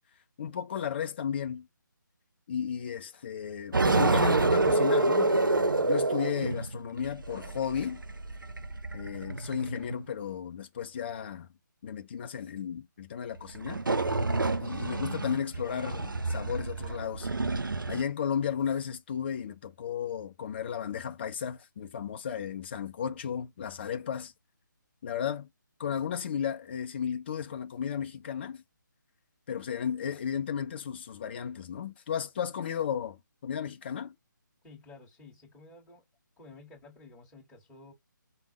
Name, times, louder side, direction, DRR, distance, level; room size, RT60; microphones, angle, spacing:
voice 1, 0.4-1.7 2.5-8.0 8.9-11.5 11.8-13.8 14.6-17.3 17.9-24.3 25.0-25.5 25.8-28.6 29.5-34.1, left 8 dB, 30° left, 0.6 m, -34 dB
sound 1, 3.7-10.0 13.5-18.0, right 2 dB, 80° right, 0.6 m, -28 dB
voice 2, 34.6-36.0 36.4-37.9, left 3 dB, 10° left, 1.9 m, -52 dB
3.5 x 2.1 x 2.9 m
figure-of-eight pair, 150°, 11 cm